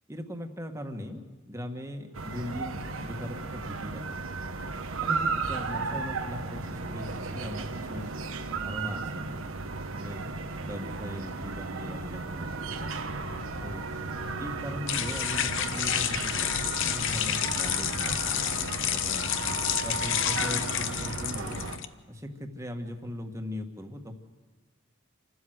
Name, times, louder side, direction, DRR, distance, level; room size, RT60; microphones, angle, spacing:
voice 1, 0.1-4.0 4.9-8.1 8.5-9.4 9.9-10.3 10.6-13.2 13.6-13.9 14.4-18.6 18.9-19.3 19.8-21.6 22.1-24.1, left 1 dB, 15° right, 4 dB, 1.7 m, -39 dB
sound 1, 2.1-21.8, right 4 dB, 80° right, 1.3 m, -35 dB
sound 2, 13.3-21.8, left 10 dB, 65° left, 0.8 m, -30 dB
28.0 x 12.5 x 7.9 m, 1.3 s
head